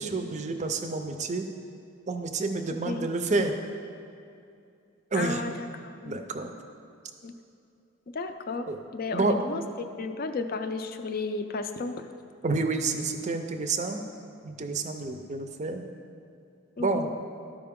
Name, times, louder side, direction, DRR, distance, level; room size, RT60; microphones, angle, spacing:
voice 1, 0.0-1.4 2.1-3.5 5.1-5.4 6.1-6.5 8.7-8.8 9.1-9.4 12.4-14.0 14.4-15.8 16.8-17.1, right 3 dB, 35° right, 6 dB, 0.5 m, -29 dB
voice 2, 5.1-6.2 7.2-7.3 8.1-8.6 8.9-12.0 16.8-17.1, left 3 dB, 45° left, 8 dB, 0.4 m, -33 dB
12.5 x 5.1 x 3.6 m, 2.5 s
head